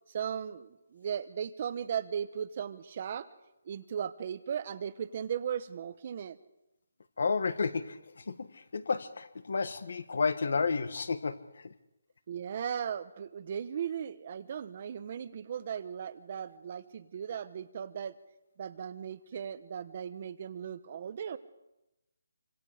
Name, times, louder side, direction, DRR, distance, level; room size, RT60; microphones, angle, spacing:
voice 1, 0.1-3.3 3.6-6.4 12.3-18.2 18.6-21.4, right 8 dB, 30° right, 13 dB, 1.0 m, -37 dB
voice 2, 7.2-11.7, left 4 dB, 60° left, 13 dB, 1.5 m, -32 dB
27.5 x 25.5 x 5.1 m, 0.93 s
hypercardioid pair, 175°, 0 cm